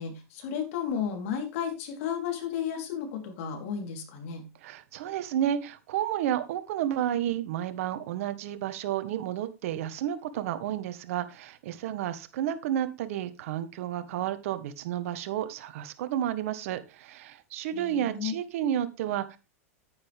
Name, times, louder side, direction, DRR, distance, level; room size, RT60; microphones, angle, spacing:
voice 1, 0.0-4.5 17.7-18.4, left 8 dB, 65° left, 4 dB, 3.7 m, -33 dB
voice 2, 4.6-19.4, right 11 dB, 65° right, 12 dB, 1.3 m, -31 dB
10.0 x 9.5 x 3.5 m, 0.28 s
hypercardioid pair, 100°, 8 cm